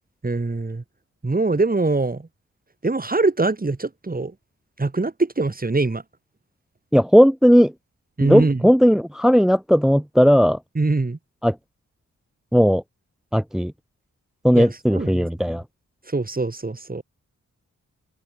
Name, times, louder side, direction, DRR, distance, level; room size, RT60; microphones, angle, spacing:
voice 1, 0.2-0.8 1.2-2.3 2.8-4.3 4.8-6.0 8.2-8.6 10.8-11.2 14.5-15.6 16.1-17.0, right 3 dB, 30° right, 7.8 m, -23 dB
voice 2, 6.9-7.7 8.2-10.6 11.4-11.5 12.5-12.8 13.3-13.7 14.4-15.6, equal, ahead, 0.8 m, -16 dB
cardioid pair, 75°, 30 cm